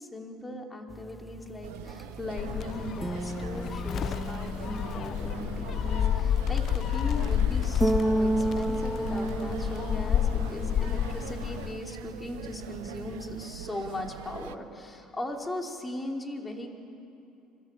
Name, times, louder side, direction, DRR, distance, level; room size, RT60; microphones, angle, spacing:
voice 1, 0.0-16.8, left 1 dB, 20° left, 1 dB, 4.9 m, -38 dB
sound 1, 0.9-13.4, right 1 dB, 10° right, 0.9 m, -34 dB
sound 2, 1.6-14.6, right 13 dB, 80° right, 0.8 m, -43 dB
Gull seagull, 2.4-11.7, left 10 dB, 50° left, 0.5 m, -30 dB
26.5 x 23.5 x 8.3 m, 2.8 s
hypercardioid pair, 70°, 0 cm